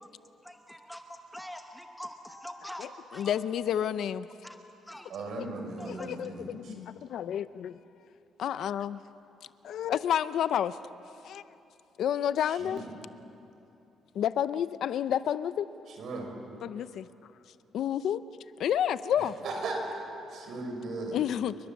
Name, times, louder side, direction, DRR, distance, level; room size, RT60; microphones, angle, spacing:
voice 1, 0.4-2.9 3.1-3.4 4.4-4.6 4.9-5.1 5.8-6.1, equal, ahead, 5 dB, 1.0 m, -44 dB
voice 2, 2.8-4.3 5.4-5.5 5.9-7.8 8.4-9.0 9.6-10.8 11.2-11.4 12.0-12.8 14.1-15.7 16.6-17.1 17.7-18.2 18.6-19.4 21.1-21.6, left 10 dB, 60° left, 14 dB, 0.6 m, -30 dB
voice 3, 5.1-6.7 12.5-12.9 16.0-16.3 19.2-20.0 20.3-21.2, right 2 dB, 55° right, 3 dB, 5.7 m, -37 dB
29.5 x 22.5 x 7.2 m, 2.8 s
cardioid pair, 165°, 0 cm